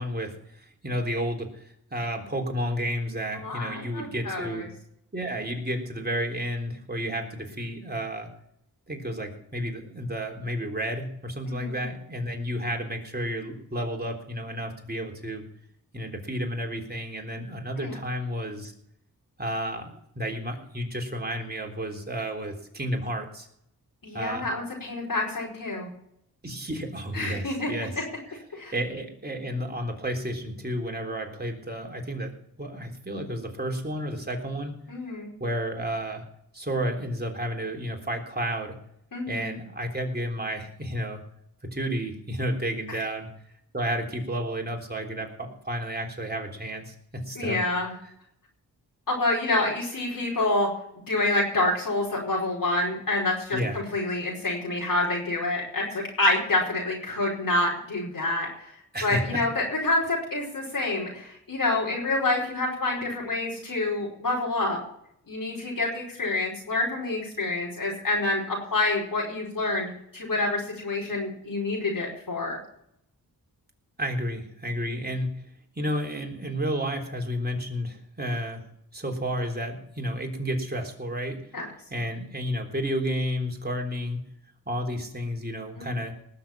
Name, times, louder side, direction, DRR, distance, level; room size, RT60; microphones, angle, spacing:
voice 1, 0.0-4.7 5.1-8.3 8.9-15.4 15.9-18.7 19.4-23.5 24.1-24.5 26.4-27.9 28.3-32.3 32.6-34.8 35.4-36.2 36.5-38.7 39.3-41.2 41.6-43.3 43.7-47.6 48.0-48.1 53.5-53.8 58.9-59.5 74.0-75.4 75.8-78.7 78.9-81.4 81.9-84.2 84.7-86.1, equal, 25° right, 1 dB, 3.6 m, -31 dB
voice 2, 3.4-4.6 11.5-11.8 17.8-17.9 24.0-25.9 27.1-27.7 28.5-28.7 34.9-35.3 39.1-39.5 42.9-43.0 47.3-47.9 49.1-50.7 51.1-58.7 59.0-64.8 65.3-72.6 81.5-81.7 85.7-86.0, left 2 dB, 60° left, -4 dB, 4.9 m, -27 dB
19.5 x 6.9 x 7.4 m, 0.72 s
cardioid pair, 60°, 38 cm